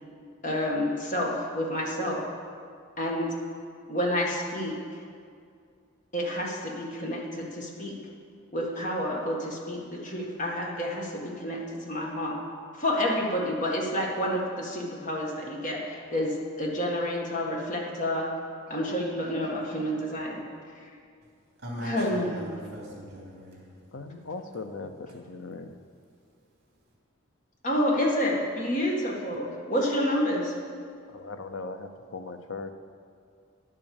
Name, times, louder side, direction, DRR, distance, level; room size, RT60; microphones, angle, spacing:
voice 1, 0.4-2.3 3.0-3.3 3.9-5.0 6.1-8.0 8.5-12.4 12.7-18.3 18.7-20.4 20.8-20.9 21.8-22.4 27.6-30.6, equal, 40° left, -2 dB, 1.8 m, -29 dB
voice 2, 21.6-23.7, equal, 50° right, -3 dB, 3.2 m, -39 dB
voice 3, 23.9-25.7 31.1-32.7, left 3 dB, 70° left, 8 dB, 0.7 m, -39 dB
10.5 x 7.6 x 7.1 m, 2.2 s
head